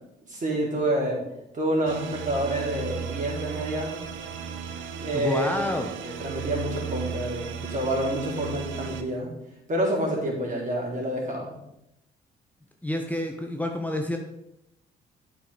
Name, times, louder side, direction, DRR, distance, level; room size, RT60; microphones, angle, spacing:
voice 1, 0.3-1.2 1.5-4.0 5.0-5.8 6.0-9.3 9.7-11.5, right 1 dB, 40° right, -2 dB, 3.9 m, -28 dB
sound 1, 1.9-9.0, right 7 dB, 80° right, 0.8 m, -35 dB
voice 2, 5.1-5.9 12.8-14.2, left 1 dB, 10° left, 2 dB, 1.0 m, -28 dB
8.5 x 6.0 x 5.1 m, 0.83 s
supercardioid pair, 55°, 20 cm